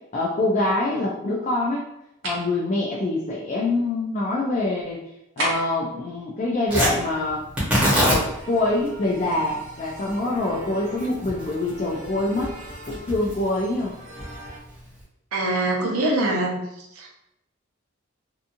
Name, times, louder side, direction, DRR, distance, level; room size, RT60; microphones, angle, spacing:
voice 1, 0.1-1.8 2.2-5.0 5.4-7.4 7.9-12.5 12.9-13.9, left 2 dB, 35° left, -3 dB, 0.3 m, -25 dB
sound 1, 2.2-2.5 5.4-5.8, equal, 60° right, 1.0 m, -28 dB
Tearing, 6.7-15.0, equal, 5° right, 0.9 m, -28 dB
sound 2, 8.0-14.6, right 1 dB, 35° right, 0.5 m, -43 dB
voice 2, 15.3-17.1, right 2 dB, 90° right, 0 dB, 0.6 m, -24 dB
2.8 x 2.4 x 2.5 m, 0.83 s
head